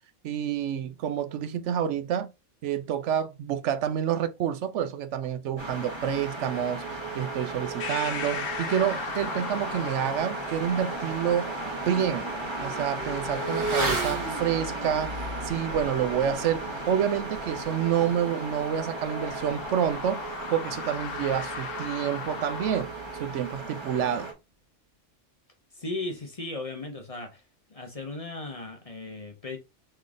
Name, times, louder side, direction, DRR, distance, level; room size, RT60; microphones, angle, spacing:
voice 1, 0.2-2.3 2.6-11.5 11.8-12.3 12.6-15.1 15.4-20.2 20.5-22.9 23.2-24.3, right 9 dB, 75° right, 0.9 m, -28 dB
sound 1, 5.6-24.3, right 2 dB, 25° right, 1.1 m, -35 dB
sound 2, 7.8-22.8, left 7 dB, 85° left, 1.1 m, -40 dB
Motorcycle / Accelerating revving vroom, 11.7-21.1 21.4-21.5, right 2 dB, 45° right, 1.6 m, -36 dB
voice 2, 25.7-27.4 27.7-29.6, left 2 dB, 35° left, 0.8 m, -36 dB
3.7 x 3.3 x 3.6 m
omnidirectional pair, 1.3 m